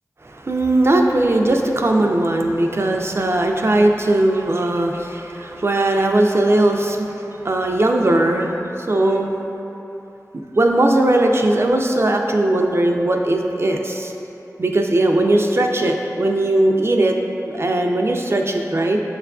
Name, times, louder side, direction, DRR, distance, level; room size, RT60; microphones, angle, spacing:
voice 1, 0.2-7.1 7.4-8.6 8.9-9.3 10.6-14.1 14.6-17.2 17.4-19.0, right 1 dB, 45° right, 2 dB, 0.3 m, -18 dB
6.9 x 2.4 x 2.3 m, 3.0 s
wide cardioid pair, 45°, 6 cm